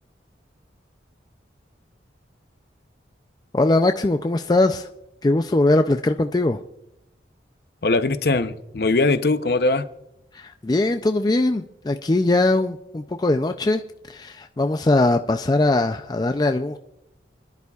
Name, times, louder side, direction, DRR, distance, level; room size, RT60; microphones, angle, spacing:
voice 1, 3.5-4.9 5.2-6.6 10.3-13.8 14.1-16.8, left 2 dB, 20° left, 7 dB, 0.4 m, -21 dB
voice 2, 7.8-9.8, left 3 dB, 55° left, 10 dB, 0.7 m, -21 dB
29.0 x 11.0 x 2.4 m, 0.83 s
head